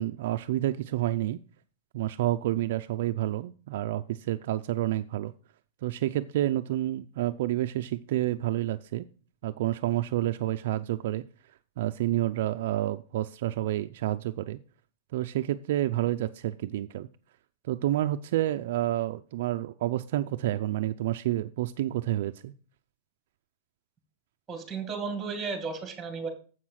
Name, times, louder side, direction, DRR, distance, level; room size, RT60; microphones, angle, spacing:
voice 1, 0.0-1.4 1.9-5.3 5.8-9.1 9.4-11.2 11.8-14.6 15.1-17.1 17.6-22.5, right 14 dB, 60° right, 9 dB, 0.4 m, -29 dB
voice 2, 24.5-26.3, right 5 dB, 15° right, 7 dB, 2.2 m, -34 dB
7.7 x 6.3 x 5.7 m, 0.39 s
supercardioid pair, 160°, 0 cm